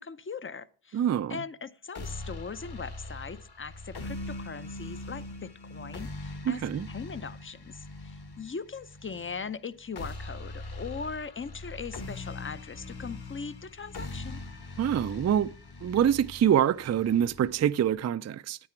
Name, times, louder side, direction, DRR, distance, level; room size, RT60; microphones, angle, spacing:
voice 1, 0.0-1.0 1.3-14.4, left 5 dB, 30° left, 0.5 m, -40 dB
voice 2, 0.9-1.4 6.5-6.9 14.8-15.5 15.8-18.6, right 9 dB, 40° right, 0.4 m, -25 dB
sound 1, 1.9-17.9, left 2 dB, 55° left, 1.7 m, -42 dB
9.6 x 8.8 x 4.4 m
cardioid pair, 70°, 45 cm